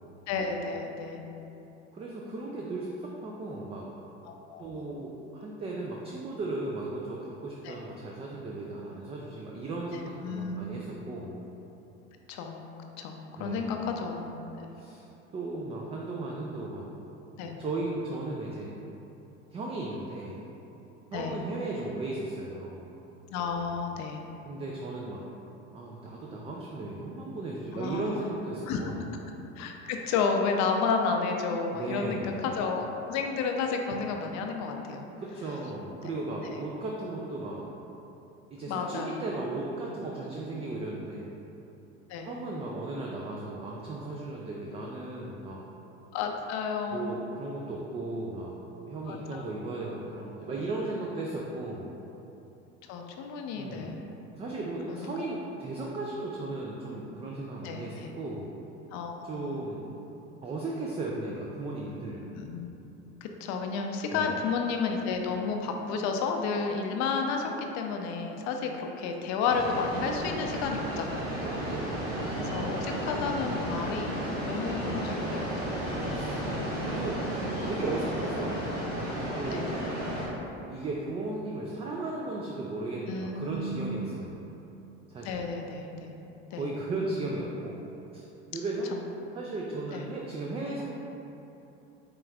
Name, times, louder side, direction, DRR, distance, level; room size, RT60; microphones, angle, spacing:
voice 1, 0.3-1.2 4.2-4.9 7.6-7.7 9.9-10.6 12.3-12.6 13.0-14.3 14.6-14.8 17.4-17.6 21.1-21.4 23.3-24.2 27.7-28.0 28.7-28.8 29.6-35.1 36.0-36.1 36.4-36.6 38.7-39.2 42.1-42.3 46.1-47.1 49.1-49.4 52.9-54.0 54.9-55.1 57.6-58.1 58.9-59.6 62.3-62.7 63.2-71.4 72.4-75.8 79.5-79.7 83.1-84.3 85.2-86.1 86.5-86.7 88.9-89.0 89.9-90.1, left 5 dB, 55° left, 3 dB, 0.5 m, -32 dB
voice 2, 1.9-3.8 4.6-11.4 13.4-13.9 14.8-15.0 15.3-16.9 17.6-18.7 19.5-20.4 21.1-22.9 24.5-25.3 25.7-29.0 31.7-32.4 35.2-37.7 38.5-41.3 42.2-45.6 46.9-48.5 48.9-51.9 53.5-53.9 54.3-58.5 59.2-59.9 60.4-62.2 64.1-64.3 71.4-72.8 76.1-76.4 76.8-77.2 77.6-78.7 79.3-79.7 80.7-84.4 85.1-85.4 86.5-87.8 88.1-88.2 88.5-88.9 89.3-90.8, right 2 dB, 20° right, -2 dB, 0.3 m, -36 dB
sound 1, 69.5-80.3, right 1 dB, 85° right, 1.1 m, -33 dB
4.8 x 3.0 x 2.3 m, 2.9 s
hypercardioid pair, 80°, 34 cm